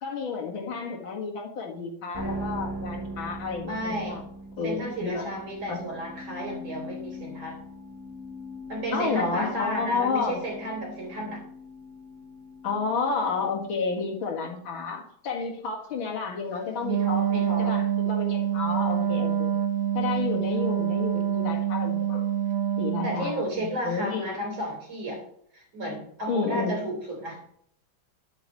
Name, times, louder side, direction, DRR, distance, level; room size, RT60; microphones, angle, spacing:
voice 1, 0.0-4.2 4.6-5.3 5.7-5.8 8.9-10.4 12.6-17.2 17.6-19.5 19.9-22.3 22.8-24.3 26.3-26.8, left 5 dB, 80° left, 1 dB, 2.5 m, -31 dB
sound 1, 2.1-14.4, equal, 15° right, 1.4 m, -40 dB
voice 2, 3.7-4.2 4.6-7.6 8.7-11.4 16.9-17.7 23.0-25.2 25.5-27.4, right 1 dB, 80° right, 0 dB, 4.9 m, -33 dB
Wind instrument woodwind instrument, 16.8-23.3, right 9 dB, 55° right, 1.0 m, -26 dB
9.5 x 9.0 x 3.1 m, 0.65 s
omnidirectional pair, 2.1 m